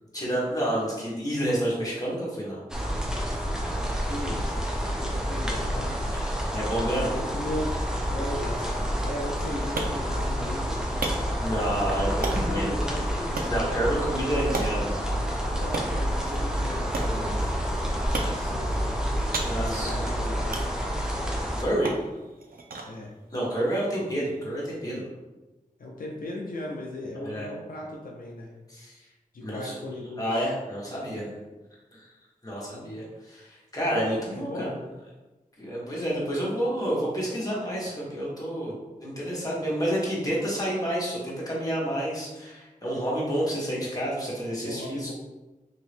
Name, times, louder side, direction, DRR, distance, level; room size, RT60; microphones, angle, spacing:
voice 1, 0.1-2.6 6.2-7.1 11.4-12.7 13.4-15.1 19.4-19.9 21.6-21.9 23.3-25.0 27.2-27.5 28.7-29.0 29.4-29.8 30.2-31.3 31.9-32.1 32.4-34.7 35.6-38.7 39.0-45.1, right 1 dB, 25° left, -6 dB, 1.2 m, -29 dB
sound 1, 2.7-21.6, equal, 5° right, 0.6 m, -29 dB
voice 2, 4.0-6.0 7.1-7.8 8.1-10.8 11.9-13.9 15.5-19.0 19.5-20.8 22.8-23.1 25.8-28.5 29.3-30.3 32.6-32.9 34.3-34.8 44.6-45.1, left 1 dB, 75° left, -2 dB, 0.5 m, -37 dB
sound 2, 9.2-24.8, right 3 dB, 80° right, 0.4 m, -38 dB
2.9 x 2.7 x 3.3 m, 1.1 s
wide cardioid pair, 75°, 15 cm